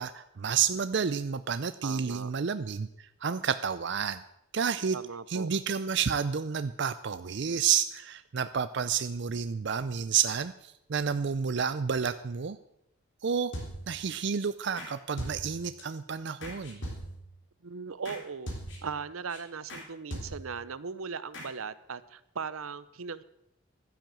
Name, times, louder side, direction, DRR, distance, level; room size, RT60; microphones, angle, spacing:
voice 1, 0.0-4.2 4.5-5.0 5.3-12.6 13.2-13.5 13.9-16.8, right 7 dB, 55° right, 12 dB, 0.5 m, -30 dB
voice 2, 1.8-2.3 4.9-5.5 17.6-18.5 18.8-23.2, right 5 dB, 80° right, 16 dB, 0.7 m, -38 dB
sound 1, 13.5-14.1 14.8-14.9 15.2-15.8 16.4-17.3 18.0-18.2 18.5-19.0 19.3-19.4 19.7-19.8 20.1-20.6 21.3-21.5, equal, 60° left, 3.7 m, -40 dB
12.0 x 10.0 x 7.6 m, 0.80 s
head